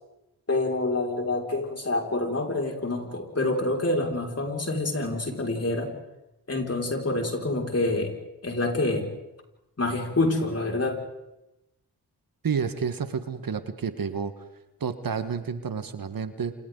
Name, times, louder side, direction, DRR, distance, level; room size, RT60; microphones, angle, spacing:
voice 1, 0.5-5.9 6.5-8.1 8.4-9.1 9.8-11.0, left 2 dB, 35° left, 1 dB, 5.8 m, -27 dB
voice 2, 12.4-14.3 14.8-16.5, right 6 dB, 55° right, 10 dB, 1.6 m, -30 dB
29.0 x 28.0 x 4.0 m, 0.94 s
supercardioid pair, 45°, 41 cm